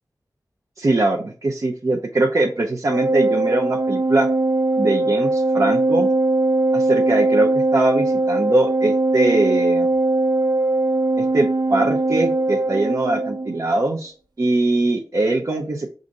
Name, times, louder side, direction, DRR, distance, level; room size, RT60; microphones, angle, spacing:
voice 1, 0.8-4.3 4.8-6.1 6.7-9.9 11.2-14.1 14.4-15.9, right 2 dB, 50° right, 0 dB, 0.6 m, -21 dB
Organ, 2.9-13.6, right 2 dB, 80° right, 0.9 m, -20 dB
4.9 x 2.5 x 4.0 m, 0.39 s
wide cardioid pair, 70°, 7 cm